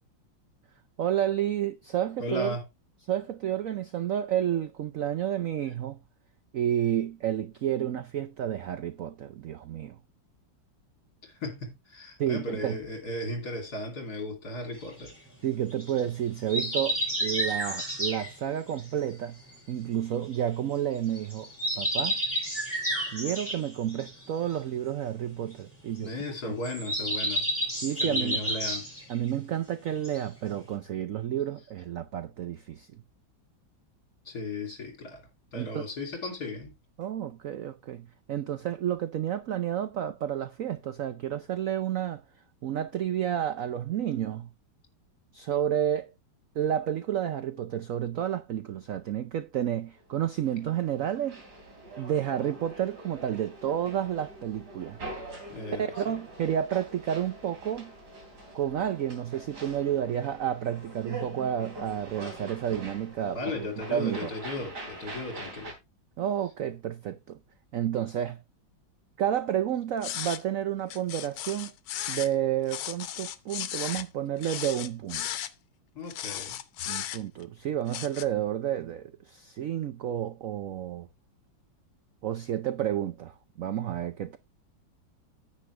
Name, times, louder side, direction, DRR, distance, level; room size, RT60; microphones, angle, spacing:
voice 1, 1.0-2.5 3.1-6.0 6.5-10.0 12.2-12.8 15.4-19.4 19.7-21.5 21.8-22.2 23.1-26.1 26.4-26.5 27.8-28.4 29.1-32.9 35.5-35.9 37.0-42.2 42.6-44.5 45.3-46.1 46.5-51.4 52.0-55.0 55.8-57.9 58.5-64.3 66.2-67.4 67.7-68.4 69.2-71.7 72.1-75.3 76.9-81.1 82.2-84.4, right 10 dB, 75° right, 0.7 m, -30 dB
voice 2, 2.2-2.6 11.2-15.1 26.0-27.5 28.0-28.9 34.2-36.7 55.5-56.0 63.3-65.7 75.9-76.6, left 2 dB, 50° left, 3.4 m, -36 dB
sound 1, 14.7-20.6 20.9-29.6 29.9-30.7, equal, 5° right, 5.9 m, -32 dB
sound 2, 50.1-65.7, right 1 dB, 55° right, 3.6 m, -44 dB
sound 3, 70.0-70.4 70.9-72.3 72.7-74.1 74.4-75.5 76.1-77.4 77.9-78.2, left 12 dB, 85° left, 1.6 m, -35 dB
9.9 x 8.5 x 3.3 m
omnidirectional pair, 2.2 m